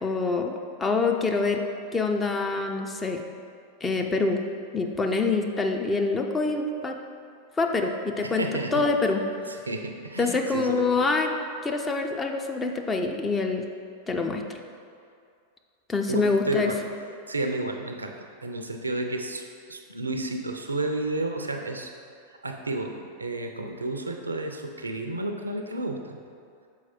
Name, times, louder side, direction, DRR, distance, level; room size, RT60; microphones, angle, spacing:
voice 1, 0.0-1.6 1.9-3.2 3.8-4.4 4.7-7.0 7.6-8.5 8.7-9.2 10.2-11.3 11.6-13.6 14.1-14.4 15.9-16.7, left 3 dB, 15° left, 3 dB, 0.5 m, -25 dB
voice 2, 8.2-8.8 9.5-11.0 16.1-16.8 17.3-18.1 18.4-21.9 22.4-26.2, right 2 dB, 80° right, 4 dB, 0.5 m, -31 dB
6.4 x 4.6 x 4.2 m, 2.3 s
figure-of-eight pair, 90°, 0 cm